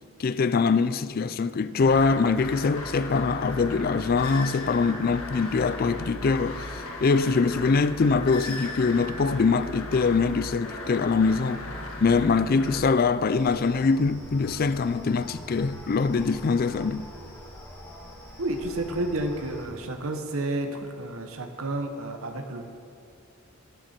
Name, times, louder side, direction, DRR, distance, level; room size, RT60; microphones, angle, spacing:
voice 1, 0.2-11.6 12.0-17.1, left 4 dB, 45° left, 0.4 m, -23 dB
sound 1, 1.8-12.8, left 2 dB, 80° left, 1.7 m, -37 dB
sound 2, 13.3-19.7, left 1 dB, 10° left, 1.8 m, -44 dB
voice 2, 18.4-22.7, right 1 dB, 80° right, 1.0 m, -31 dB
18.0 x 7.5 x 4.5 m
head